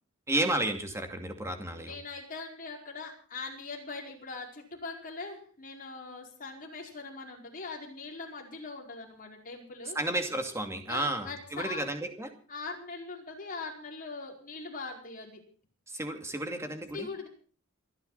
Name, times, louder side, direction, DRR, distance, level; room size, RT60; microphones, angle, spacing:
voice 1, 0.3-2.0 9.9-12.3 15.9-17.1, right 1 dB, 15° right, 5 dB, 2.5 m, -32 dB
voice 2, 1.7-10.0 10.9-11.8 12.5-15.4 16.9-17.3, left 3 dB, 40° left, 0 dB, 4.9 m, -41 dB
28.5 x 10.5 x 4.1 m, 0.41 s
head